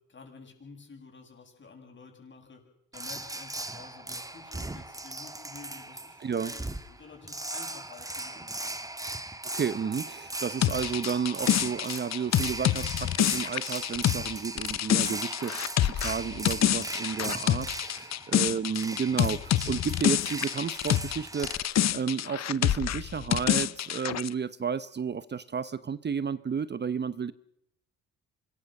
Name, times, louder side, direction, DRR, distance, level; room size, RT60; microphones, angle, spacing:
voice 1, 0.1-2.6 2.9-9.2 18.2-18.7, left 4 dB, 40° left, 7.9 m, -51 dB
sound 1, 2.9-21.6, right 2 dB, 10° right, 1.6 m, -38 dB
voice 2, 6.2-6.5 9.5-27.3, right 6 dB, 35° right, 0.9 m, -32 dB
sound 2, 10.6-21.2 21.4-24.3, left 11 dB, 60° left, 0.9 m, -27 dB
26.0 x 21.0 x 6.6 m
cardioid pair, 90°, 30 cm